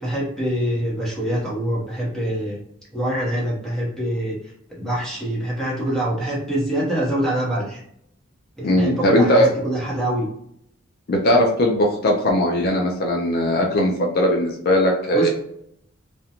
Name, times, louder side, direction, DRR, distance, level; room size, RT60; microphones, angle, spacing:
voice 1, 0.0-2.6 2.9-4.4 4.7-7.8 8.6-10.3 15.1-15.3, right 1 dB, ahead, -6 dB, 0.8 m, -25 dB
voice 2, 8.6-9.5 11.1-15.3, equal, 45° left, 0 dB, 0.4 m, -19 dB
2.5 x 2.1 x 2.8 m, 0.72 s
head